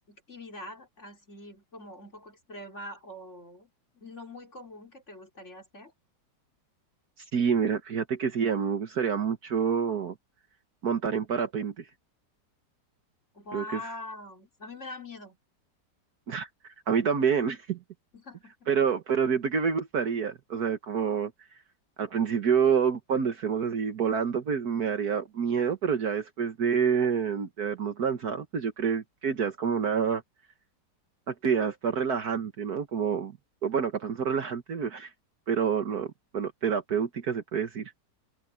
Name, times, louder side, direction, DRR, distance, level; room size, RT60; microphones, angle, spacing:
voice 1, 0.1-5.9 13.3-15.4 18.1-18.7, left 1 dB, 40° left, 3.9 m, -44 dB
voice 2, 7.3-10.1 10.8-11.9 13.5-13.8 16.3-17.8 18.7-21.3 22.0-30.2 31.3-33.3 33.6-35.1 35.5-37.9, right 6 dB, 65° right, 1.8 m, -28 dB
omnidirectional pair, 1.8 m